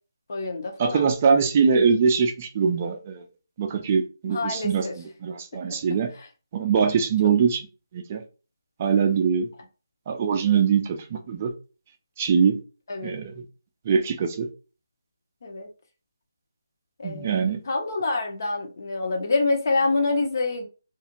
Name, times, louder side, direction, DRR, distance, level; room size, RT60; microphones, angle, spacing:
voice 1, 0.3-1.0 4.3-5.0 5.7-5.8 6.1-6.3 12.9-13.1 15.4-15.7 17.0-20.6, left 3 dB, 50° left, 0.7 m, -27 dB
voice 2, 0.8-3.2 3.6-4.8 5.2-6.1 6.5-7.6 7.9-8.2 8.8-9.5 10.1-11.5 12.2-12.6 13.0-13.3 13.9-14.5 17.0-17.6, right 6 dB, 25° right, 0.4 m, -22 dB
2.4 x 2.4 x 2.9 m
figure-of-eight pair, 165°, 2 cm